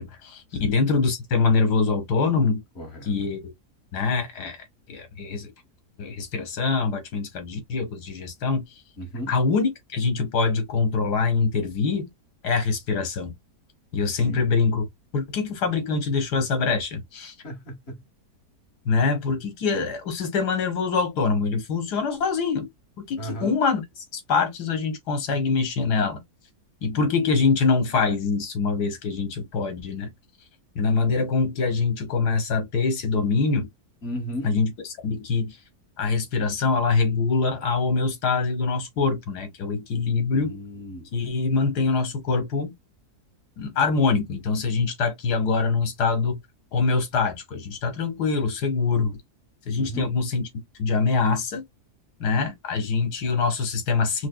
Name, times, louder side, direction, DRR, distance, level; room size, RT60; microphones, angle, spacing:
voice 1, 0.0-2.6 3.1-3.5 3.9-4.6 4.9-5.5 6.0-8.6 9.3-12.1 12.4-13.3 13.9-14.9 15.1-17.3 18.9-22.7 23.1-26.2 26.8-30.1 30.8-33.7 34.4-34.7 35.0-35.6 36.0-40.5 41.1-42.7 43.6-46.4 46.7-49.2 49.7-50.4 50.8-51.6 52.2-54.3, left 4 dB, 80° left, 1.8 m, -24 dB
voice 2, 2.7-3.1 9.0-9.4 14.0-14.4 17.4-18.0 23.2-23.5 34.0-34.5 40.3-41.1 49.7-50.2, equal, 40° left, 1.5 m, -35 dB
4.9 x 2.2 x 2.2 m
omnidirectional pair, 1.7 m